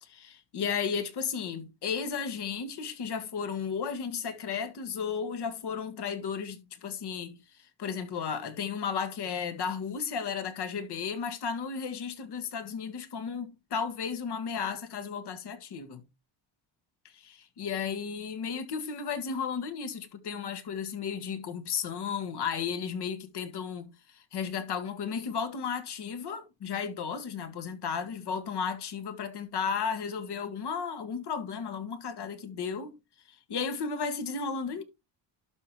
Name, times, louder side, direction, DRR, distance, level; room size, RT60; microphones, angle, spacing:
voice 1, 0.0-16.0 17.1-32.9 33.3-34.8, left 6 dB, 55° left, 1.7 m, -34 dB
12.0 x 5.1 x 3.0 m
cardioid pair, 110°, 46 cm